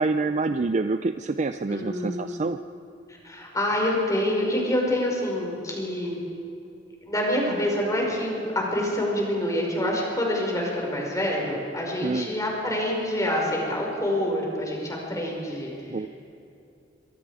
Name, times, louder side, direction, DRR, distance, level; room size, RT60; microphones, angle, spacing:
voice 1, 0.0-2.6 12.0-12.3 15.9-16.1, right 3 dB, 40° right, 9 dB, 0.5 m, -26 dB
voice 2, 1.7-2.4 3.2-6.2 7.1-15.7, left 1 dB, 20° left, -1 dB, 5.2 m, -26 dB
24.5 x 22.5 x 4.9 m, 2.7 s
head